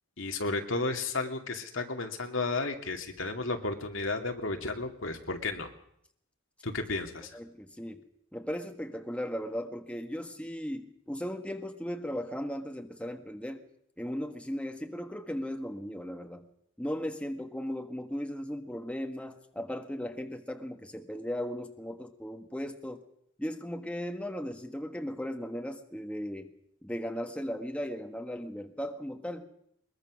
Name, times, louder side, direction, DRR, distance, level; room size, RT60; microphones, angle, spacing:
voice 1, 0.2-5.7 6.6-7.3, left 3 dB, 70° left, 4 dB, 2.4 m, -33 dB
voice 2, 7.3-8.0 8.3-13.7 14.0-16.5 16.8-23.0 23.4-26.5 26.8-29.5, equal, 5° left, 5 dB, 1.4 m, -37 dB
22.0 x 21.5 x 6.3 m, 0.74 s
head